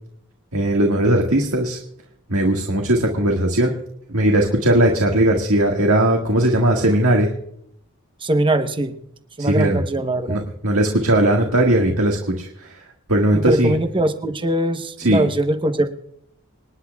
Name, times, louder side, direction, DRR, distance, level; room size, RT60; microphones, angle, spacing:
voice 1, 0.5-1.8 2.3-3.7 4.1-7.3 9.4-9.8 10.3-12.5 13.1-13.7 15.0-15.2, right 1 dB, 70° right, 1 dB, 1.7 m, -18 dB
voice 2, 8.2-9.0 9.4-10.4 13.3-15.9, right 1 dB, 20° right, 8 dB, 0.9 m, -21 dB
26.5 x 10.5 x 2.3 m, 0.72 s
head